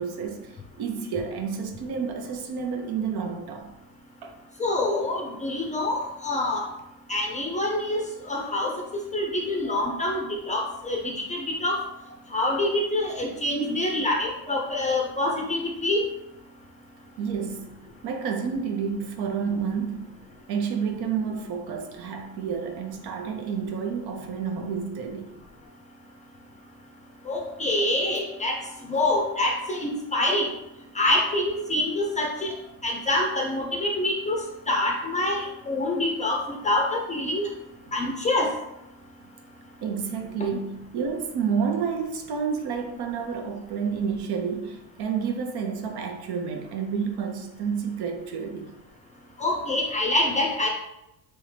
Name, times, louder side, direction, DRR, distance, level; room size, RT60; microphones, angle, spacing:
voice 1, 0.0-3.7 4.2-4.3 17.2-17.7 18.0-20.1 20.5-25.3 37.9-38.0 39.8-48.7, right 6 dB, 60° right, 0.7 m, -30 dB
voice 2, 4.6-6.6 7.1-8.7 9.1-11.8 12.3-16.0 27.3-28.6 28.9-30.5 31.0-32.6 32.8-34.4 34.7-37.5 37.9-38.5 49.4-50.7, left 1 dB, 15° left, 0.5 m, -26 dB
3.6 x 3.1 x 3.2 m
cardioid pair, 130°, 45 cm